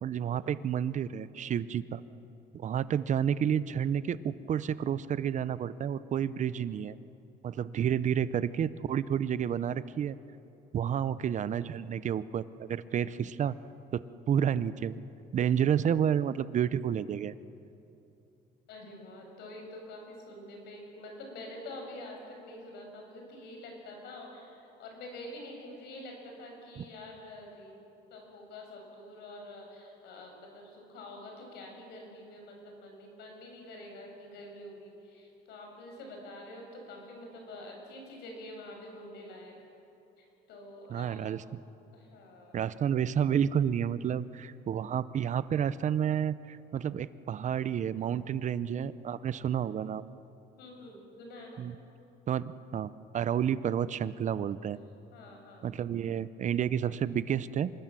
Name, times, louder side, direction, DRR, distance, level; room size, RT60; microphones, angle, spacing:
voice 1, 0.0-2.0 2.5-7.0 7.4-10.2 10.7-13.5 13.9-14.9 15.3-17.3 26.8-26.9 40.9-41.4 42.5-50.1 51.6-51.7 52.3-54.8 55.6-57.7, right 9 dB, 45° right, 16 dB, 0.7 m, -30 dB
voice 2, 18.7-27.7 28.1-39.5 40.2-41.2 41.9-42.6 50.6-51.6 55.1-55.7, left 1 dB, 80° left, 1 dB, 6.9 m, -47 dB
26.0 x 20.0 x 7.6 m, 2.8 s
cardioid pair, 110°, 17 cm